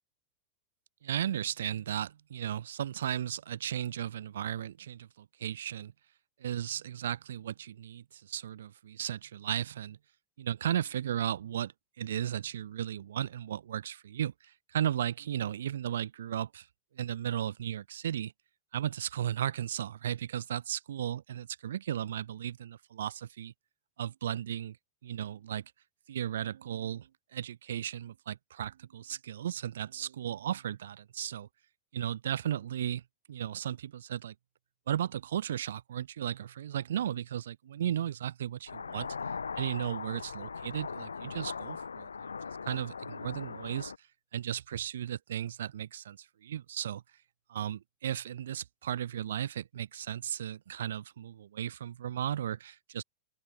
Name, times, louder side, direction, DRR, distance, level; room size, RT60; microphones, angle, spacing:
voice 1, 1.0-5.9 6.4-10.0 10.4-16.7 16.9-18.3 18.7-23.5 24.0-24.8 25.0-25.6 26.1-31.5 31.9-33.0 33.3-34.3 34.9-39.1 39.6-42.1 42.7-44.1 44.3-47.0 47.5-53.0, right 10 dB, 60° right, 0.8 m, -35 dB
sound 1, 38.7-44.0, left 5 dB, 75° left, 0.7 m, -40 dB
open air
figure-of-eight pair, 90°, 0 cm